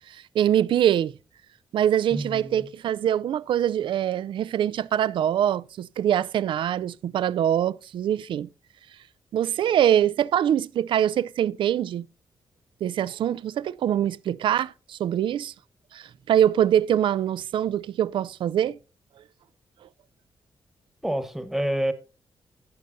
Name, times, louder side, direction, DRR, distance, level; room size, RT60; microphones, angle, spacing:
voice 1, 0.1-1.1 1.7-8.5 9.3-12.1 12.8-15.5 15.9-18.8, right 10 dB, 70° right, 0.4 m, -24 dB
voice 2, 2.1-2.7 21.0-21.9, right 1 dB, 5° right, 1.3 m, -28 dB
18.5 x 6.6 x 2.6 m
wide cardioid pair, 150°, 9 cm